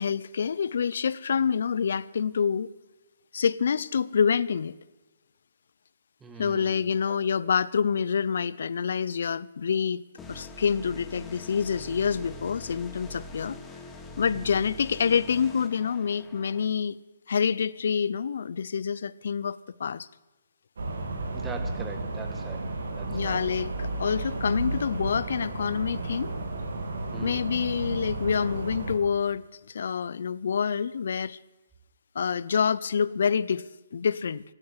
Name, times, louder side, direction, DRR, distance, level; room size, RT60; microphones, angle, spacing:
voice 1, 0.0-2.7 3.3-4.7 6.4-10.0 10.3-13.6 14.2-17.0 17.3-20.1 23.1-26.3 27.2-31.4 32.1-33.6 33.9-34.4, left 6 dB, 70° left, 0.6 m, -27 dB
voice 2, 6.2-6.8 14.4-14.6 21.3-22.7 23.0-23.4 27.1-27.4, right 5 dB, 10° right, 1.4 m, -41 dB
sound 1, 10.2-16.7, left 2 dB, 10° left, 1.4 m, -43 dB
sound 2, 20.8-29.0, right 2 dB, 80° right, 3.0 m, -33 dB
15.5 x 9.8 x 8.1 m
hypercardioid pair, 160°, 0 cm